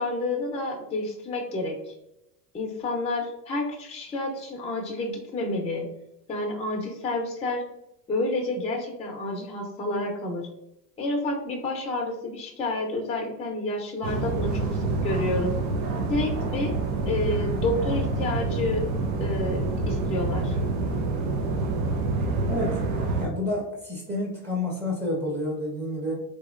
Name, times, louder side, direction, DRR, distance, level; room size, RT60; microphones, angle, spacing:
voice 1, 0.0-1.9 2.5-5.9 6.3-7.6 8.1-10.5 11.0-15.5 16.1-16.7 17.1-18.8 19.2-20.6, left 2 dB, 15° left, 0 dB, 0.6 m, -29 dB
sound 1, 14.0-23.3, right 3 dB, 70° right, 0.9 m, -27 dB
voice 2, 22.5-22.8 23.2-26.2, left 1 dB, 20° right, -3 dB, 1.2 m, -29 dB
3.3 x 3.0 x 2.4 m, 0.85 s
supercardioid pair, 95°, 44 cm